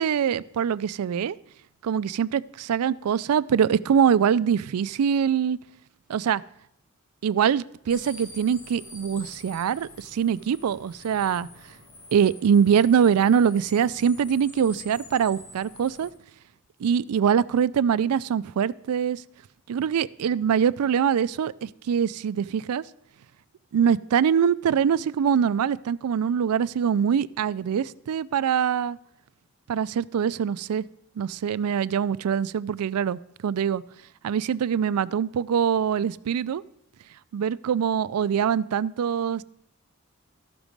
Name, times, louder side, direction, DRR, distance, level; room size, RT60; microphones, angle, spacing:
voice 1, 0.0-1.4 1.8-5.6 6.1-6.4 7.2-11.5 12.1-16.1 16.8-19.2 19.7-22.8 23.7-29.0 29.7-30.8 31.2-33.8 34.2-36.6 37.3-39.4, right 7 dB, 80° right, 19 dB, 0.3 m, -23 dB
sound 1, 7.9-16.1, left 2 dB, 75° left, 2.1 m, -46 dB
13.5 x 6.0 x 5.2 m, 0.74 s
head